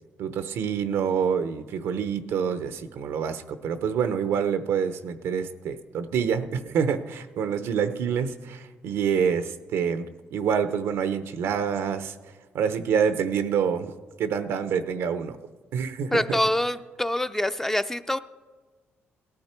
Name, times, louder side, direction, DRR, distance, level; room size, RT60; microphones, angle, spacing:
voice 1, 0.2-12.1 12.5-13.9 14.2-15.4 15.7-16.4, right 7 dB, 85° right, 10 dB, 0.8 m, -27 dB
voice 2, 16.1-18.2, left 1 dB, 10° left, 10 dB, 0.5 m, -25 dB
17.5 x 12.5 x 4.5 m, 1.3 s
cardioid pair, 85°, 4 cm